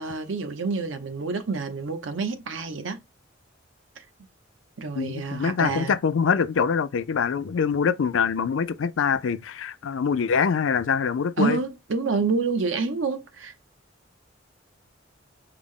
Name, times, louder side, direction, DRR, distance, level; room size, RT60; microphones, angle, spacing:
voice 1, 0.0-3.0 4.0-4.1 4.8-6.0 11.4-13.5, right 4 dB, 85° right, 0.7 m, -28 dB
voice 2, 5.0-11.6, left 6 dB, 85° left, 0.4 m, -24 dB
4.7 x 2.1 x 3.6 m
head